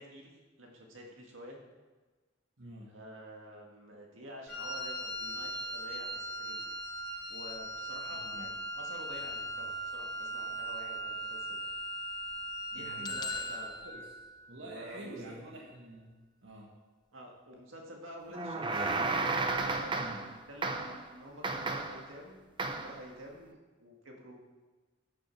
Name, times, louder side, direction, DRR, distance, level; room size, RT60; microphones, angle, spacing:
voice 1, 0.0-1.6 2.9-6.7 7.3-11.7 12.7-13.8 14.6-15.3 17.1-18.9 19.4-24.4, equal, 90° right, 0 dB, 2.0 m, -49 dB
voice 2, 2.6-2.9 8.1-8.5 12.8-13.2 13.8-14.0 14.5-16.1 16.4-16.7 19.9-20.2, right 1 dB, 75° right, -3 dB, 1.7 m, -47 dB
Wind instrument woodwind instrument, 4.5-13.7, right 1 dB, 55° left, 2.3 m, -39 dB
sound 1, 13.0-15.0, left 4 dB, 20° left, 0.3 m, -42 dB
sound 2, 18.3-20.3 20.6-21.0 21.4-22.1 22.6-23.0, right 3 dB, 25° right, 0.7 m, -33 dB
11.5 x 6.7 x 5.9 m, 1.3 s
head